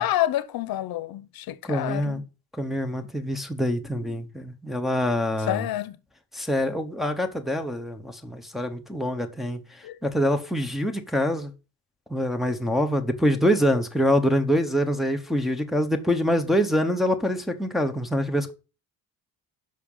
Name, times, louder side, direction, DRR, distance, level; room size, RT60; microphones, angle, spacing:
voice 1, 0.0-2.3 5.5-6.0 9.8-10.0, left 13 dB, 75° left, 0.9 m, -28 dB
voice 2, 1.6-2.2 2.6-5.7 6.3-9.6 10.0-11.5 12.1-18.5, equal, ahead, 0.9 m, -25 dB
9.9 x 5.9 x 5.5 m
cardioid pair, 165°, 36 cm